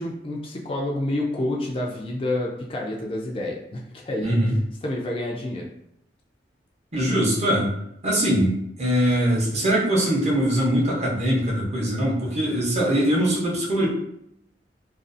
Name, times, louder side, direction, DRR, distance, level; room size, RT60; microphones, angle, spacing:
voice 1, 0.0-4.4 4.8-5.7, left 1 dB, 30° left, -1 dB, 0.4 m, -28 dB
voice 2, 4.2-4.6 6.9-7.7 8.0-13.9, equal, 35° right, -4 dB, 0.7 m, -22 dB
2.5 x 2.3 x 2.5 m, 0.76 s
head